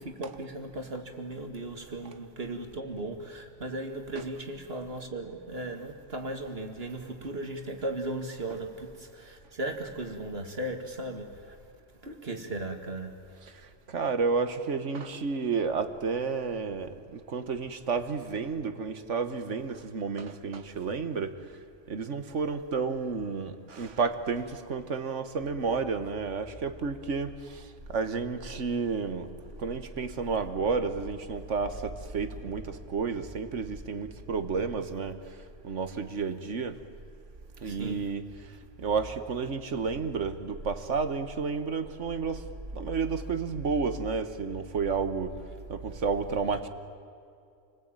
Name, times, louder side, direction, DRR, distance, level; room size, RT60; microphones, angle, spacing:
voice 1, 0.0-11.6 12.0-13.1 37.6-38.1, right 1 dB, 50° right, 2.5 m, -37 dB
voice 2, 13.9-21.3 21.9-27.6 27.9-29.3 29.6-35.2 35.6-36.8 37.6-38.3 38.8-42.4 42.7-45.3 45.7-46.7, right 5 dB, 70° right, 1.7 m, -31 dB
29.0 x 20.0 x 9.1 m
omnidirectional pair, 1.3 m